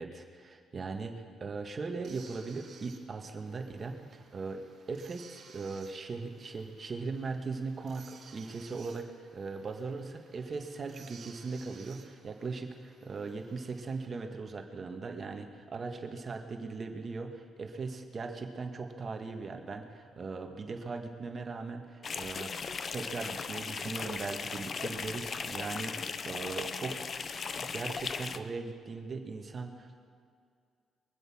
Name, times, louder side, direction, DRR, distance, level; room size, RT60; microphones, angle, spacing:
voice 1, 0.0-27.3 27.6-30.0, right 4 dB, 40° right, 5 dB, 1.7 m, -39 dB
sound 1, 2.0-14.1, right 5 dB, 60° right, 2.0 m, -57 dB
sound 2, 22.0-28.4, left 5 dB, 45° left, 0.7 m, -37 dB
23.0 x 7.9 x 6.2 m, 2.3 s
cardioid pair, 90°, 0 cm